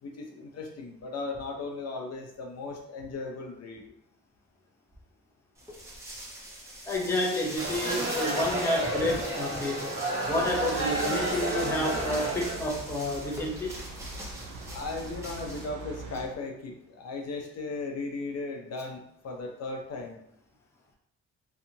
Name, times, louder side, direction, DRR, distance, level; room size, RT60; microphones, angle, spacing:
voice 1, 0.0-3.8 14.7-20.2, left 3 dB, 55° left, 2 dB, 0.6 m, -37 dB
sound 1, 5.6-15.7, right 1 dB, 10° right, 0.9 m, -41 dB
voice 2, 6.9-9.9 10.3-13.7, left 1 dB, 10° left, -1 dB, 0.5 m, -30 dB
sound 2, 7.6-12.7, right 2 dB, 40° right, 1.1 m, -31 dB
sound 3, 10.2-16.3, right 3 dB, 75° right, 0.8 m, -43 dB
2.7 x 2.3 x 2.7 m, 0.73 s
cardioid pair, 90°, 30 cm